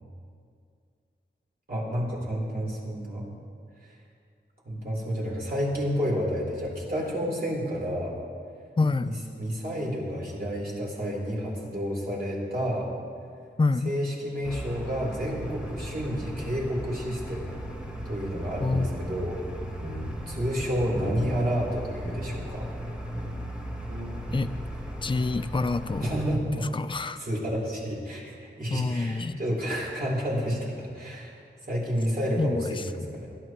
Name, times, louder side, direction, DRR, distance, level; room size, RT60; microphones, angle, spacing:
voice 1, 1.7-3.3 3.8-4.0 4.6-8.1 9.0-12.9 13.8-17.6 18.0-19.4 20.3-22.7 26.0-26.7 27.2-31.3 31.6-33.3, equal, 50° right, -4 dB, 4.0 m, -30 dB
voice 2, 8.8-9.1 13.6-13.9 18.6-18.9 24.3-24.5 25.0-26.1 26.7-27.2 28.7-29.4 32.4-33.1, left 3 dB, 25° left, 11 dB, 0.4 m, -27 dB
sound 1, 14.4-26.4, equal, 5° right, 1.5 m, -37 dB
sound 2, 18.3-20.2 20.6-21.4 21.7-21.8 22.0-22.5 22.8-24.8, equal, 90° right, 3.6 m, -38 dB
22.0 x 13.0 x 3.1 m, 2.3 s
wide cardioid pair, 75°, 20 cm